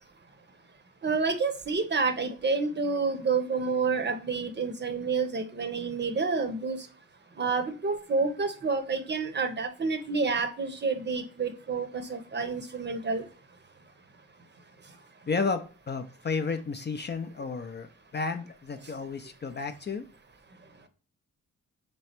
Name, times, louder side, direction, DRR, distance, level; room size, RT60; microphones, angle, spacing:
voice 1, 1.0-6.9 7.4-13.2, right 4 dB, 35° right, 9 dB, 0.7 m, -29 dB
voice 2, 15.3-20.1, left 4 dB, 35° left, 7 dB, 0.5 m, -32 dB
3.4 x 3.1 x 4.3 m, 0.37 s
cardioid pair, 90°, 32 cm